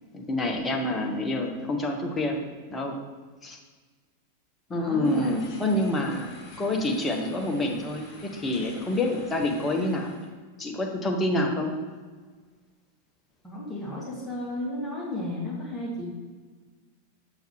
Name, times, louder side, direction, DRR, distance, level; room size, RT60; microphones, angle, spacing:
voice 1, 0.1-3.0 3.4-3.6 4.7-6.3 6.6-10.1 10.6-11.7, left 1 dB, 15° left, 1 dB, 1.0 m, -27 dB
voice 2, 4.7-5.3 13.4-16.1, left 1 dB, ahead, -7 dB, 2.1 m, -33 dB
sound 1, 5.0-10.3, left 3 dB, 35° left, 1.9 m, -47 dB
6.9 x 6.7 x 3.1 m, 1.4 s
figure-of-eight pair, 90°, 0 cm